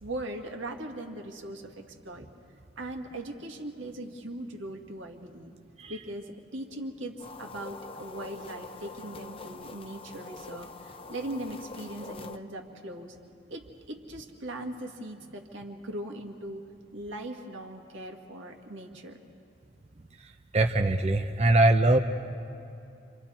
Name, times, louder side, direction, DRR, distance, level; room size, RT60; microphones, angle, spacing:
voice 1, 0.0-2.3 2.8-5.5 5.9-13.2 13.5-16.6 16.9-19.2, right 1 dB, 80° right, 2 dB, 2.0 m, -39 dB
sound 1, 7.2-12.4, left 3 dB, 30° left, 0.6 m, -44 dB
voice 2, 20.5-22.0, right 2 dB, 35° right, 4 dB, 0.6 m, -22 dB
30.0 x 25.5 x 4.4 m, 2.7 s
head